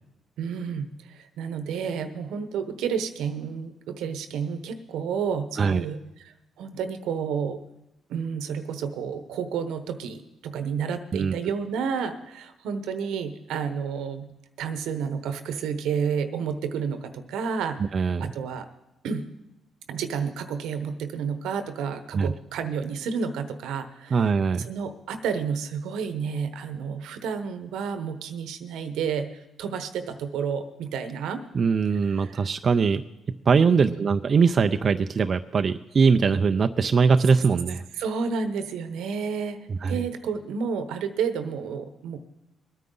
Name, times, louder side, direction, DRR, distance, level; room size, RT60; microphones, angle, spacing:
voice 1, 0.4-7.6 8.1-14.3 14.6-18.7 19.0-19.3 19.9-24.3 24.6-29.3 29.6-31.4 32.0-32.5 33.7-34.1 38.0-39.6 39.9-42.2, right 6 dB, 85° right, 9 dB, 1.0 m, -30 dB
voice 2, 17.8-18.3 22.1-22.3 24.1-24.7 31.5-33.0 33.5-37.8 39.7-40.0, right 5 dB, 45° right, 8 dB, 0.4 m, -21 dB
22.0 x 9.3 x 3.9 m, 0.91 s
cardioid pair, 90°, 0 cm